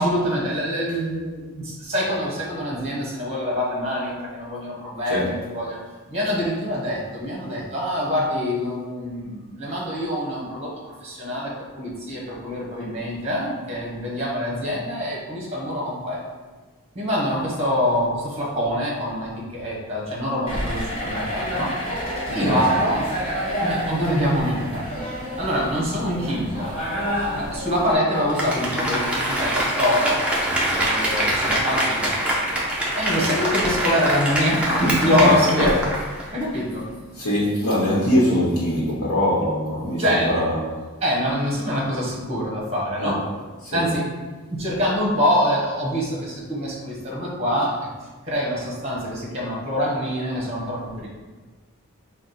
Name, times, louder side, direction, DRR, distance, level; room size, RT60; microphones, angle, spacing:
voice 1, 0.0-5.8 6.1-10.7 11.0-16.2 16.9-21.7 22.3-23.0 23.6-24.9 25.4-26.7 27.3-30.2 30.8-32.1 32.9-35.8 36.3-36.9 40.0-40.3 41.0-43.2 43.7-44.1 44.4-47.9 48.3-51.1, equal, 30° right, -4 dB, 1.1 m, -25 dB
voice 2, 5.1-5.4 22.3-22.6 33.1-33.4 35.2-35.8 37.1-40.8 43.0-43.2 43.6-43.8, left 1 dB, 85° left, -8 dB, 1.1 m, -23 dB
sound 1, 20.5-28.0, equal, 25° left, 1.4 m, -29 dB
Applause, 28.1-36.3 36.7-36.8, right 1 dB, 5° right, 0.6 m, -24 dB
4.7 x 2.3 x 4.1 m, 1.3 s
head